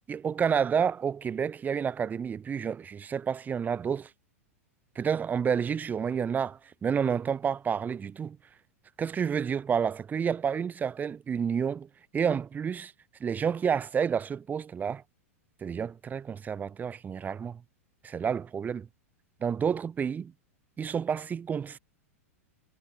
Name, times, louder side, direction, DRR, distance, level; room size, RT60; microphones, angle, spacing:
voice 1, 0.1-4.1 4.9-8.4 9.0-12.9 13.2-15.0 15.6-17.6 18.0-18.9 19.4-20.3 20.8-21.8, right 7 dB, 20° right, 4.7 m, -30 dB
hypercardioid pair, 100°, 8 cm